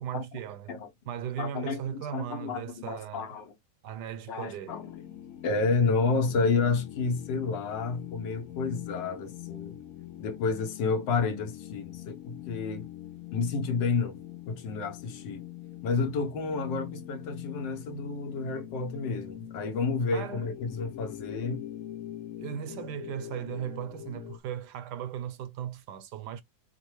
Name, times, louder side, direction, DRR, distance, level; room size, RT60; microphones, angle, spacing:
voice 1, 0.0-3.3 3.8-4.8 20.1-20.5 22.4-26.4, right 9 dB, 75° right, 1.2 m, -37 dB
voice 2, 1.4-3.5 4.3-4.9 5.4-9.8 10.2-12.9 13.3-14.2 14.5-15.4 15.8-21.6, left 4 dB, 80° left, 1.6 m, -30 dB
sound 1, 4.7-24.4, left 13 dB, 60° left, 0.9 m, -43 dB
5.1 x 2.2 x 3.0 m
omnidirectional pair, 1.9 m